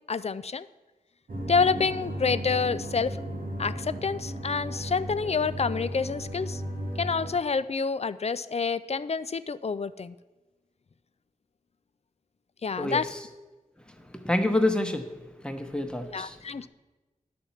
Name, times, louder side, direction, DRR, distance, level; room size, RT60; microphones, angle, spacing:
voice 1, 0.1-0.7 1.5-3.2 3.6-6.6 7.0-10.1 12.6-13.0 16.1-16.7, left 5 dB, 50° left, 15 dB, 0.4 m, -28 dB
sound 1, 1.3-7.3, equal, 85° right, 1.3 m, -35 dB
voice 2, 12.8-13.3 13.9-15.1 15.4-16.4, left 1 dB, 5° left, 6 dB, 1.0 m, -28 dB
10.5 x 4.3 x 7.1 m, 1.2 s
wide cardioid pair, 50°, 14 cm